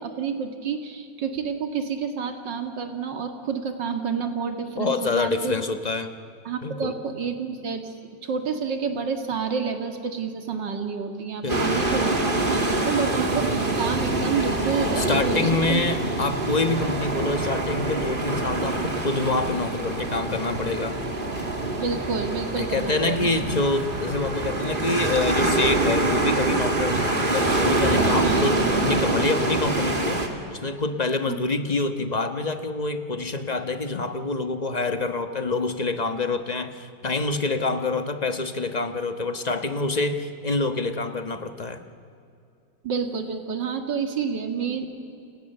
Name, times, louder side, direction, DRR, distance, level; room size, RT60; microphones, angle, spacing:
voice 1, 0.0-5.5 6.4-7.8 8.2-15.8 21.8-23.3 28.2-28.6 31.3-31.4 42.8-44.9, right 6 dB, 85° right, 5 dB, 2.6 m, -29 dB
voice 2, 4.8-6.1 6.6-6.9 11.4-11.8 15.0-21.0 22.6-30.2 30.5-41.8, left 3 dB, 25° left, 8 dB, 1.2 m, -26 dB
sound 1, 11.5-30.3, right 2 dB, 30° right, 2.5 m, -25 dB
29.5 x 27.5 x 6.9 m, 2.6 s
omnidirectional pair, 1.9 m